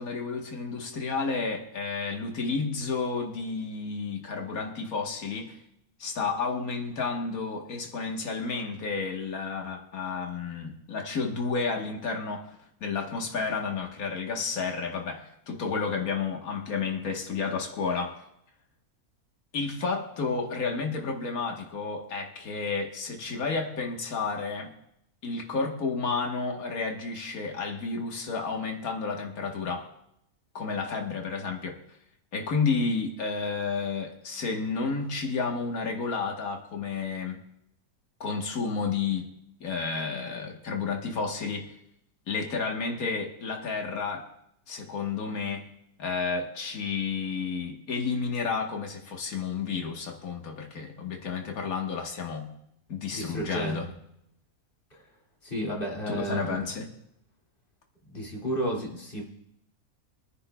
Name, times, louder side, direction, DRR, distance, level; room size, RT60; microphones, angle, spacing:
voice 1, 0.0-5.6 6.0-18.2 19.5-24.7 25.2-29.9 30.6-31.8 32.3-37.4 38.2-39.3 39.6-41.7 42.3-44.3 44.7-45.7 46.0-52.5 52.9-53.9 56.1-56.9, left 4 dB, 80° left, 2 dB, 1.8 m, -31 dB
voice 2, 53.1-53.8 54.9-55.0 55.4-56.6 58.1-59.3, right 1 dB, 40° left, -3 dB, 2.6 m, -32 dB
24.5 x 10.0 x 2.3 m, 0.77 s
omnidirectional pair, 1.5 m